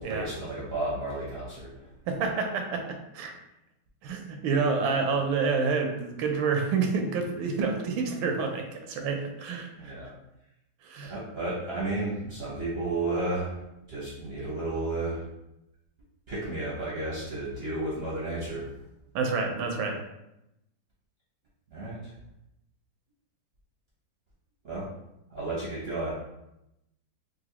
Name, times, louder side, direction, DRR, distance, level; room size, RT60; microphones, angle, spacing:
voice 1, 0.0-1.9 9.8-10.1 11.0-15.3 16.3-18.7 21.7-22.1 24.6-24.9 25.3-26.1, right 2 dB, 55° right, -7 dB, 0.7 m, -33 dB
voice 2, 2.1-3.3 4.0-10.0 10.8-11.1 19.1-20.0, right 4 dB, 80° right, 3 dB, 1.4 m, -28 dB
3.9 x 2.6 x 2.8 m, 0.88 s
omnidirectional pair, 2.2 m